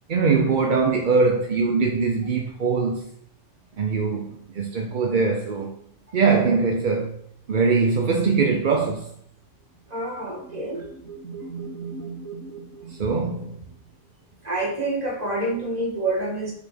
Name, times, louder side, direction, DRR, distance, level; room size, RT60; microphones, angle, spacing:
voice 1, 0.1-3.0 3.8-5.7 6.1-7.2 7.5-9.1 13.0-13.6, right 4 dB, 45° right, 0.7 m, -22 dB
voice 2, 9.9-10.8 14.4-16.5, right 2 dB, 30° right, 2.0 m, -27 dB
sound 1, 9.9-13.9, right 4 dB, 80° right, 2.6 m, -39 dB
5.7 x 4.2 x 5.9 m
omnidirectional pair, 1.4 m